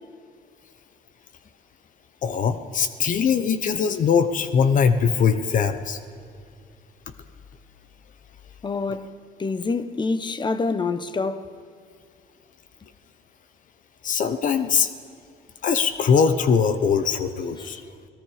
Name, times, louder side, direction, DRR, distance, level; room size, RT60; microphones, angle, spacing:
voice 1, 2.2-6.0 14.0-14.9 15.6-17.8, left 6 dB, 50° left, 1.2 m, -21 dB
voice 2, 8.6-9.1 9.4-11.5 17.6-17.7, left 4 dB, 25° left, 1.1 m, -26 dB
29.0 x 18.5 x 5.1 m
cardioid pair, 110°, 17 cm